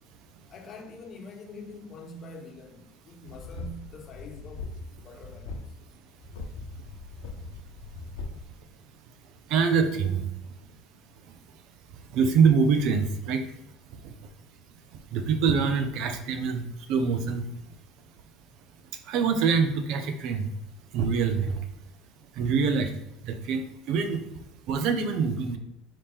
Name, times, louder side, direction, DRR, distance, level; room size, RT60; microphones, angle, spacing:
voice 1, 0.5-4.7 5.0-5.6 14.2-14.3, left 2 dB, 45° left, 0.9 m, -45 dB
sound 1, 3.2-4.9 5.2-5.7 6.2-8.4, left 3 dB, 80° left, 1.0 m, -40 dB
voice 2, 9.5-10.2 12.1-13.4 15.1-16.6 16.9-17.4 19.1-20.5 20.9-21.5 22.4-22.9 23.2-24.2 24.7-25.6, right 5 dB, 65° right, 0.6 m, -24 dB
4.8 x 2.9 x 3.6 m
supercardioid pair, 95°, 0 cm